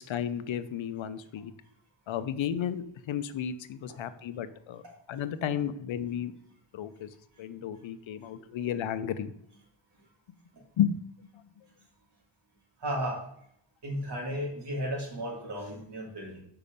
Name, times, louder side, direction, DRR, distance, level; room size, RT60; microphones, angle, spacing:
voice 1, 0.0-1.5 2.1-6.3 6.7-9.3 10.8-11.0, left 9 dB, 70° left, 12 dB, 0.8 m, -33 dB
voice 2, 12.8-13.2 13.8-16.4, equal, 55° right, -2 dB, 3.1 m, -34 dB
6.9 x 5.7 x 5.3 m, 0.70 s
wide cardioid pair, 145°, 49 cm